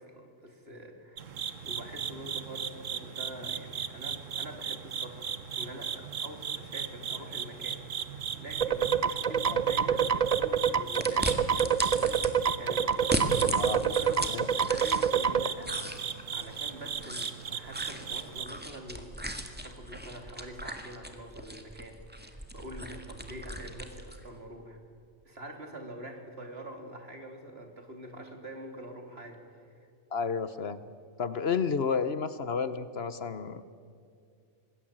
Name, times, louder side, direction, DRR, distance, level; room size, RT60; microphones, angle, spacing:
voice 1, 0.0-1.4 1.6-15.8 16.3-24.8 25.2-29.9, right 1 dB, 55° right, 4 dB, 3.3 m, -45 dB
sound 1, 1.2-18.5, right 7 dB, 90° right, 1.4 m, -37 dB
sound 2, 8.6-15.5, right 7 dB, 35° right, 0.7 m, -26 dB
sound 3, 11.0-12.3 12.9-15.3 15.6-24.2, right 1 dB, 10° right, 2.0 m, -37 dB
voice 2, 30.1-30.9 31.2-33.6, left 5 dB, 55° left, 13 dB, 1.1 m, -31 dB
26.0 x 20.5 x 8.8 m, 2.4 s
omnidirectional pair, 1.3 m